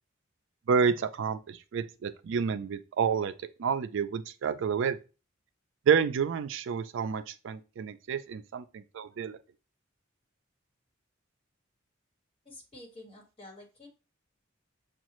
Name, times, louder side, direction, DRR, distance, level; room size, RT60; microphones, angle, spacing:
voice 1, 0.7-3.3 3.6-5.0 5.9-9.3, right 6 dB, 65° right, 0.4 m, -29 dB
voice 2, 12.4-13.9, left 1 dB, 30° left, 1.6 m, -49 dB
7.2 x 2.4 x 3.0 m
head